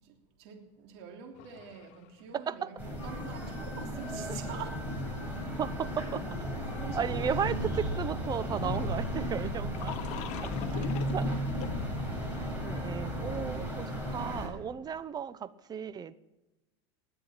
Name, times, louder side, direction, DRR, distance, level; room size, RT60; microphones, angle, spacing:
voice 1, 0.0-4.8 6.6-7.4 10.3-13.3, right 7 dB, 65° right, 3 dB, 3.2 m, -47 dB
sound 1, 1.4-2.2 2.6-2.7 5.3-5.4 7.3-7.4 7.5-7.6 9.4-9.5 9.7-11.9, left 12 dB, 55° left, 1.2 m, -40 dB
sound 2, 2.8-14.5, equal, 10° right, 6.6 m, -34 dB
sound 3, 3.0-9.5, left 2 dB, 10° left, 1.8 m, -54 dB
voice 2, 5.6-6.2 6.9-10.0 10.4-10.8 11.1-11.3 12.6-16.1, right 7 dB, 25° right, 15 dB, 0.9 m, -35 dB
20.5 x 8.0 x 8.8 m, 1.0 s
supercardioid pair, 110°, 15 cm